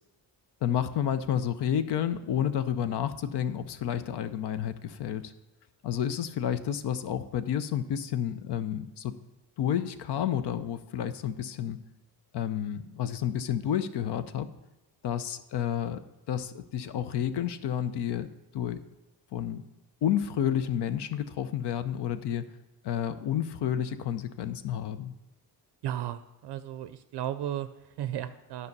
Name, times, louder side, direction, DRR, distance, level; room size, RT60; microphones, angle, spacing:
voice 1, 0.6-5.3 5.8-9.1 9.6-11.8 12.3-14.5 15.0-16.0 16.3-18.8 19.3-19.6 20.0-22.5 22.8-25.1, left 9 dB, 65° left, 12 dB, 0.7 m, -30 dB
voice 2, 25.8-28.7, right 11 dB, 65° right, 12 dB, 0.5 m, -35 dB
9.6 x 5.5 x 5.3 m, 0.94 s
cardioid pair, 90°, 43 cm